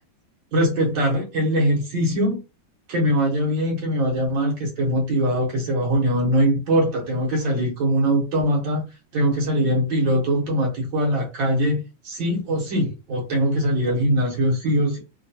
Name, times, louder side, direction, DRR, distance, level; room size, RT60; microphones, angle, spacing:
voice 1, 0.5-2.4 2.9-8.8 9.1-15.0, equal, 85° right, 1.9 m, -22 dB
3.8 x 2.2 x 2.7 m
omnidirectional pair, 2.0 m